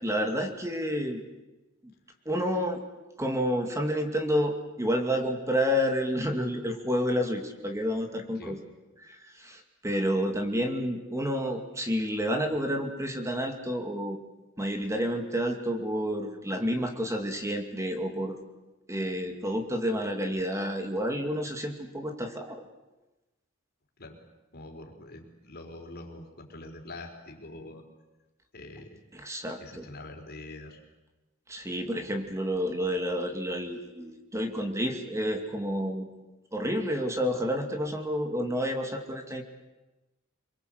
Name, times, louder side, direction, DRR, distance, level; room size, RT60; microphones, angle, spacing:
voice 1, 0.0-1.2 2.3-2.8 3.2-8.6 9.0-14.2 14.6-18.4 18.9-22.6 29.1-29.9 31.5-36.1 36.5-39.4, equal, 15° right, 4 dB, 2.5 m, -30 dB
voice 2, 24.5-27.8 28.5-29.0 29.6-30.8, left 2 dB, 50° left, 3 dB, 4.3 m, -44 dB
26.5 x 23.0 x 8.0 m, 1.1 s
head